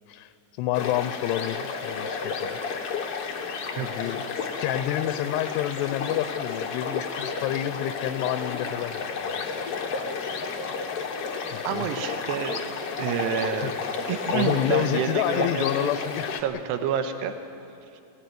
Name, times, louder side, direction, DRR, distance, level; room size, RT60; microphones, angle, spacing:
voice 1, 0.1-2.7 3.8-4.2 4.6-9.4 11.5-11.9 13.6-13.7 14.3-16.4, left 13 dB, 85° left, 12 dB, 2.8 m, -29 dB
sound 1, 0.7-16.4, left 5 dB, 60° left, 1.5 m, -31 dB
voice 2, 3.8-4.1 11.6-12.7 13.0-13.7 14.1-15.9 16.4-17.3, right 8 dB, 85° right, 7 dB, 3.2 m, -29 dB
22.5 x 16.0 x 9.2 m, 2.5 s
omnidirectional pair, 4.8 m